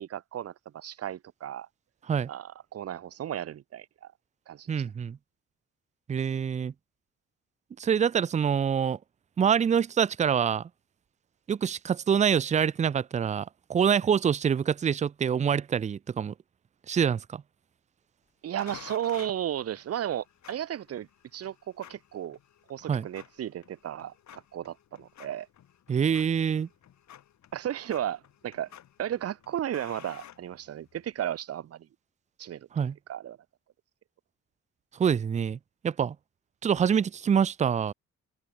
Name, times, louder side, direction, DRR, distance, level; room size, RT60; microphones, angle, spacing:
voice 1, 0.0-1.7 2.3-4.1 4.5-4.7 18.4-22.4 22.7-25.5 27.5-28.7 29.0-31.9 32.4-32.8 33.1-33.4, right 11 dB, 50° right, 0.9 m, -34 dB
voice 2, 4.7-5.2 6.1-6.7 7.8-9.0 9.4-10.7 11.5-16.3 16.9-17.4 22.9-23.1 25.9-26.7 32.7-33.0 34.9-35.6 35.8-36.2 36.6-37.9, right 7 dB, 25° right, 0.4 m, -25 dB
sound 1, 18.6-31.1, left 10 dB, 65° left, 3.4 m, -53 dB
open air
cardioid pair, 90°, 30 cm